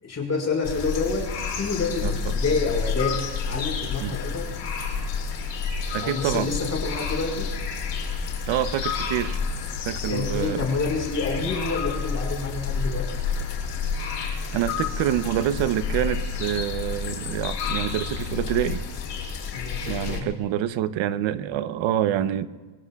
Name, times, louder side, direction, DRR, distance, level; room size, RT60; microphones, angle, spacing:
voice 1, 0.0-4.5 6.0-7.5 10.1-13.1 19.5-20.3, left 4 dB, 30° left, 0 dB, 4.9 m, -28 dB
sound 1, 0.6-20.2, left 5 dB, 60° left, 6.3 m, -30 dB
voice 2, 2.0-2.4 4.0-4.2 5.9-6.5 8.5-9.4 9.8-10.7 14.5-18.8 19.9-22.5, right 11 dB, 70° right, 13 dB, 0.9 m, -26 dB
24.0 x 24.0 x 2.4 m, 1.4 s
cardioid pair, 105°, 48 cm